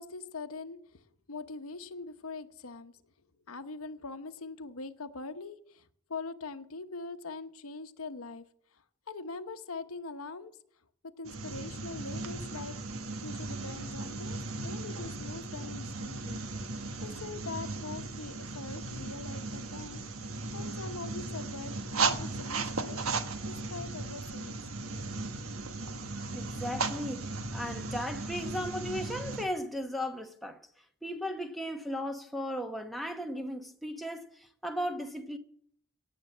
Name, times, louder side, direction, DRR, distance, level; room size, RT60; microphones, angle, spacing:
voice 1, 0.0-3.1 3.5-8.4 8.7-10.5 11.0-13.0 13.2-23.0 23.4-24.6, left 3 dB, 85° left, 1.0 m, -43 dB
sound 1, 11.2-29.4, right 3 dB, 80° right, 1.4 m, -36 dB
voice 2, 26.3-30.6 31.0-35.4, equal, ahead, 1.0 m, -36 dB
17.5 x 7.7 x 7.3 m
head